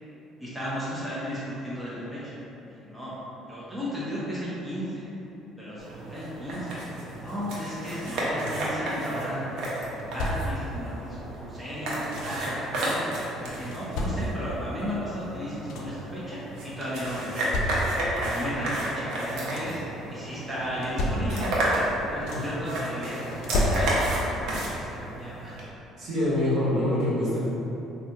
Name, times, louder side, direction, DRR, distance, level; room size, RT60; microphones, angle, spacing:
voice 1, 0.4-3.1 3.5-5.0 5.6-6.7 7.2-11.0 11.5-13.0 13.4-17.5 18.1-19.8 20.1-21.5 22.1-23.1 23.5-24.0 24.3-25.5, equal, ahead, -11 dB, 0.6 m, -35 dB
sound 1, 5.8-25.6, right 1 dB, 70° right, 0.7 m, -32 dB
sound 2, 8.0-8.8 9.8-10.7 11.7-12.5 13.4-14.6 15.2-15.3 15.5-16.1 17.0-18.2 19.1-19.9 20.6-21.7 21.9-22.7 23.3-24.3 25.6-25.7 26.2-26.4, left 1 dB, 75° left, 0.4 m, -32 dB
voice 2, 26.0-27.4, left 1 dB, 55° right, -11 dB, 1.5 m, -25 dB
4.1 x 2.6 x 2.4 m, 3.0 s
cardioid pair, 125°, 0 cm